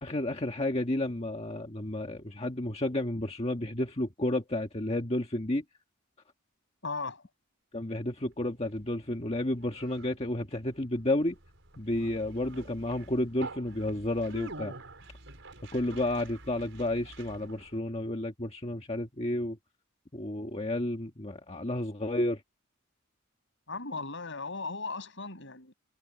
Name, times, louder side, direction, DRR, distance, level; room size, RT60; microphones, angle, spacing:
voice 1, 0.0-5.6 7.7-11.4 11.8-14.7 15.7-19.6 20.1-22.4, left 1 dB, 30° left, 1.6 m, -31 dB
voice 2, 6.8-7.2 23.7-25.7, left 3 dB, 60° left, 7.4 m, -37 dB
Conversation, 8.3-17.8, right 2 dB, 65° right, 6.0 m, -47 dB
head